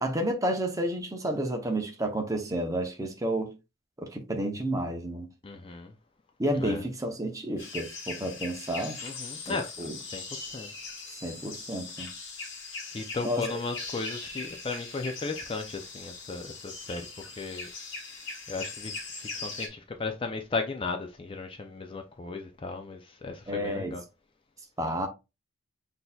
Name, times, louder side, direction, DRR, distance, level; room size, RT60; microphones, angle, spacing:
voice 1, 0.0-3.5 4.0-5.3 6.4-9.0 9.5-10.0 11.2-12.1 13.2-13.4 23.5-24.0 24.8-25.1, right 1 dB, 15° right, 0.7 m, -31 dB
voice 2, 5.4-5.9 6.5-6.8 9.0-10.7 12.9-17.7 18.5-24.0, left 3 dB, 25° left, 0.4 m, -36 dB
sound 1, 7.6-19.7, left 3 dB, 60° left, 1.1 m, -40 dB
6.0 x 2.7 x 2.2 m
head